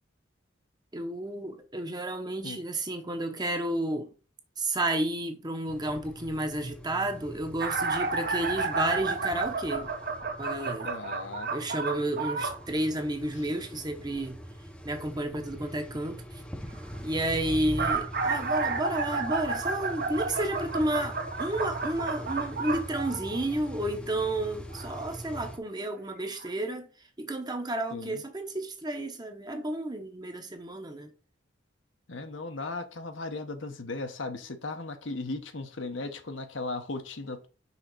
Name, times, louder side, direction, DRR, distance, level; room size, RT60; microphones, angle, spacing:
voice 1, 0.9-4.1 4.6-9.9 10.4-10.9 11.5-14.4 14.8-16.4 17.0-26.9 27.2-31.1, right 1 dB, 20° right, 0.9 m, -31 dB
sound 1, 5.7-25.6, equal, 5° left, 0.7 m, -43 dB
sound 2, 7.6-12.6 17.5-23.6 24.7-24.9 25.9-26.0 26.4-26.5, right 4 dB, 50° right, 0.9 m, -31 dB
voice 2, 10.8-11.5 27.9-28.2 32.1-37.5, left 3 dB, 70° left, 1.0 m, -37 dB
5.8 x 3.7 x 6.0 m
head